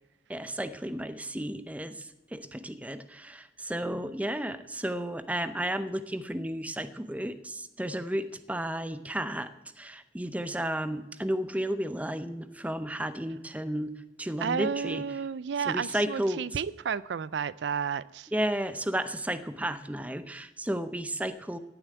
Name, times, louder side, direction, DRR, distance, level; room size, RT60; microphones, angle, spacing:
voice 1, 0.3-13.9 14.2-15.0 15.6-16.6 18.3-21.6, right 1 dB, 10° right, 12 dB, 0.7 m, -33 dB
voice 2, 14.4-18.3, right 6 dB, 85° right, 19 dB, 0.4 m, -32 dB
16.0 x 7.1 x 9.3 m, 0.99 s
head